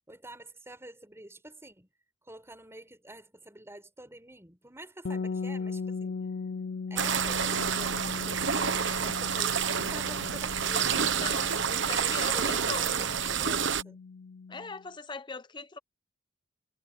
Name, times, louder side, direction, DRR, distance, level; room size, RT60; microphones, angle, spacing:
voice 1, 0.1-1.9 2.3-6.2 6.9-11.1 11.9-14.0, right 1 dB, 15° right, 6.0 m, -47 dB
sound 1, 5.0-14.8, left 4 dB, 55° left, 0.5 m, -38 dB
sound 2, 7.0-13.8, right 7 dB, 65° right, 1.2 m, -29 dB
voice 2, 10.9-12.9 14.5-15.8, left 4 dB, 25° left, 0.8 m, -40 dB
head